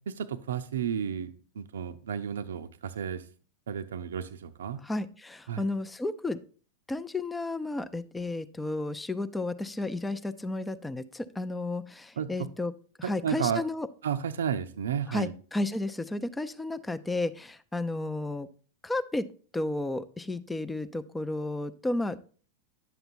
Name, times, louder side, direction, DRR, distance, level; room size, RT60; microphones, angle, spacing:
voice 1, 0.1-3.2 3.7-4.8 5.5-5.6 12.2-12.5 13.0-13.6 14.0-15.3, right 8 dB, 65° right, 0.5 m, -32 dB
voice 2, 4.8-6.4 6.9-12.7 13.0-13.9 15.1-18.5 18.8-19.3 19.5-22.2, left 2 dB, 10° left, 0.5 m, -32 dB
10.5 x 7.8 x 2.6 m
figure-of-eight pair, 90°, 0 cm